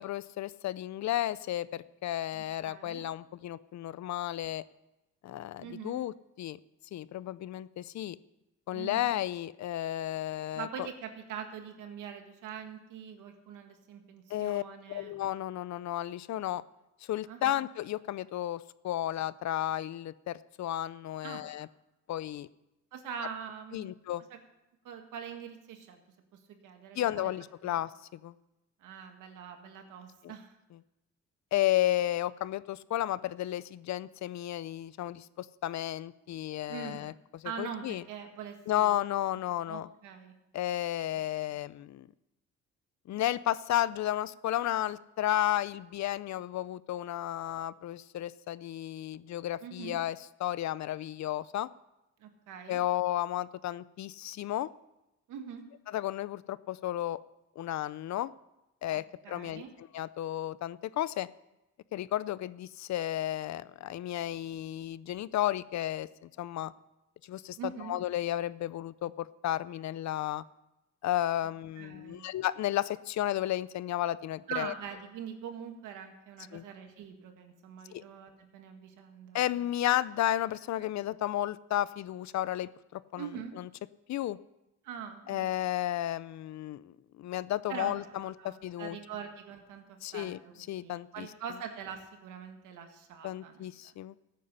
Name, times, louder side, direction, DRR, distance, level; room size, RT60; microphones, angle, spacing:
voice 1, 0.0-4.6 5.2-6.6 6.9-8.2 8.7-10.9 14.3-14.6 14.9-16.6 17.1-21.7 22.1-22.5 23.7-24.2 26.9-27.9 28.2-28.3 31.5-38.0 38.7-39.9 40.5-42.1 43.1-51.7 52.7-54.7 55.9-57.2 57.6-58.3 58.8-61.3 61.9-66.7 67.3-70.4 71.0-74.7 76.5-76.6 77.9-78.0 79.3-83.3 83.6-83.7 84.1-84.4 85.3-89.0 90.0-90.4 90.7-91.3 93.2-94.2, left 13 dB, 65° left, 18 dB, 0.6 m, -33 dB
voice 2, 2.3-3.0 5.6-6.0 8.7-9.1 10.6-15.1 17.3-17.6 21.2-21.4 22.9-23.9 24.3-24.4 24.8-26.0 26.3-27.3 27.6-27.8 28.8-30.5 36.7-37.1 37.4-38.9 39.7-40.3 49.6-50.0 52.2-52.8 55.3-55.6 58.9-59.7 67.6-68.0 71.8-72.3 74.5-79.4 83.2-83.5 84.8-85.5 87.7-94.0, right 7 dB, 90° right, 5 dB, 1.9 m, -43 dB
15.0 x 9.2 x 5.6 m, 0.93 s
cardioid pair, 90°, 30 cm